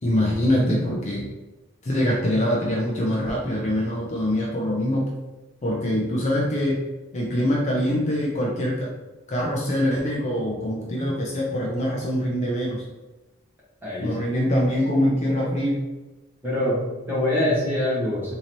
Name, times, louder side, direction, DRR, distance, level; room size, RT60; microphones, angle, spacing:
voice 1, 0.0-1.3 1.8-5.1 5.6-6.8 7.1-8.9 9.3-12.8 14.0-15.8, equal, 35° left, -3 dB, 0.6 m, -24 dB
voice 2, 13.8-14.4 16.4-18.3, left 1 dB, 10° right, -8 dB, 1.3 m, -25 dB
3.9 x 2.8 x 3.0 m, 1.1 s
head